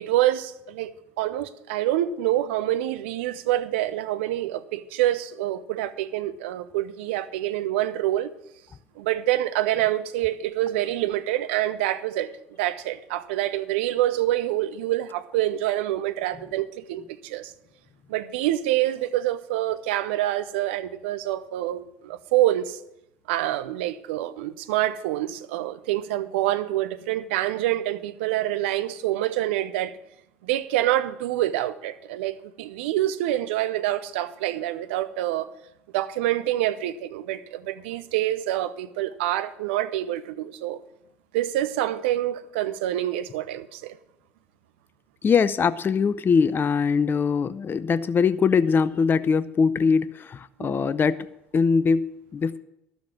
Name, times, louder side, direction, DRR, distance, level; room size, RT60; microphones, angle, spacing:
voice 1, 0.0-8.3 9.0-12.3 12.6-17.5 18.1-22.8 23.3-29.9 30.4-35.5 35.9-40.8 41.3-44.0 50.6-50.9, right 14 dB, 75° right, 0.6 m, -26 dB
voice 2, 45.2-51.3 51.5-52.6, left 5 dB, 35° left, 0.6 m, -22 dB
12.5 x 7.1 x 7.5 m
hypercardioid pair, 65°, 6 cm